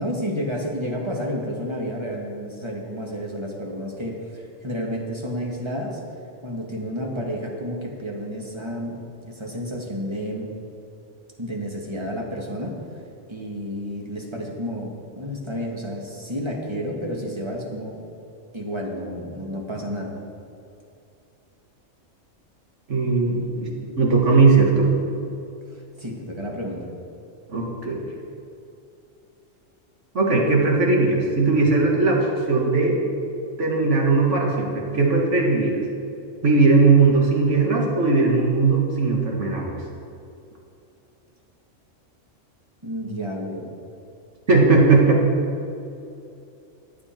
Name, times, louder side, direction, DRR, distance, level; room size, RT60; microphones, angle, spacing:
voice 1, 0.0-6.0 6.4-10.5 11.4-12.8 13.3-18.0 18.5-20.1 26.0-26.9 42.8-43.7, equal, 20° right, -1 dB, 1.7 m, -30 dB
voice 2, 22.9-23.7 24.0-24.9 27.5-28.0 30.1-33.0 33.6-35.8 36.4-39.7 44.5-45.2, right 3 dB, 70° right, -1 dB, 2.2 m, -18 dB
14.5 x 9.9 x 4.5 m, 2.6 s
omnidirectional pair, 1.3 m